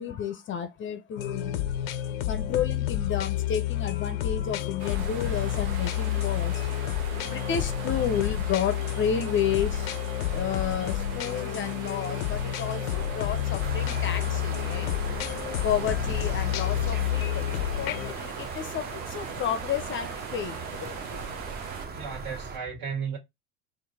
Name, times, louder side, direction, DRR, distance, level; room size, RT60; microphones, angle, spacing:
voice 1, 0.0-9.9 10.2-14.9 15.6-21.3, left 8 dB, 30° left, 0.5 m, -32 dB
sound 1, 1.2-18.1, left 12 dB, 80° left, 0.5 m, -30 dB
sound 2, 4.8-21.9, right 6 dB, 85° right, 0.9 m, -40 dB
sound 3, 13.6-22.6, right 4 dB, 25° right, 0.6 m, -38 dB
voice 2, 21.9-23.2, right 6 dB, 60° right, 1.8 m, -34 dB
3.8 x 2.2 x 3.3 m
hypercardioid pair, 75°, 41 cm